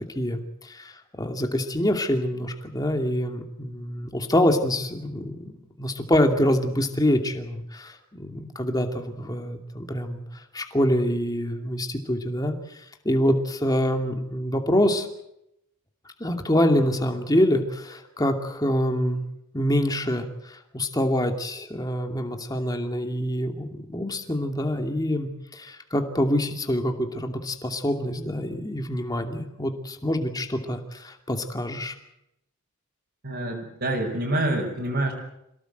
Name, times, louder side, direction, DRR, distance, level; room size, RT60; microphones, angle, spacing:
voice 1, 0.2-0.9 1.2-10.2 10.5-12.5 13.0-15.1 16.2-19.2 19.5-31.9, equal, 15° left, 4 dB, 2.6 m, -25 dB
voice 2, 33.2-35.1, right 1 dB, 50° right, -3 dB, 5.3 m, -26 dB
27.5 x 17.5 x 8.0 m, 0.82 s
head